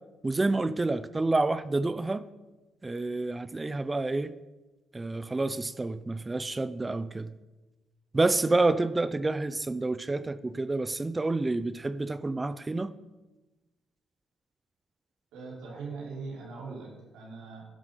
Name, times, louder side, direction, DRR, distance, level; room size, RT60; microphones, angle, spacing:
voice 1, 0.2-2.2 2.8-4.3 4.9-7.3 8.1-12.9, right 2 dB, 20° right, 14 dB, 0.6 m, -28 dB
voice 2, 15.3-17.6, right 4 dB, 90° right, -4 dB, 5.5 m, -41 dB
11.5 x 11.5 x 5.6 m, 1.1 s
cardioid pair, 90°, 0 cm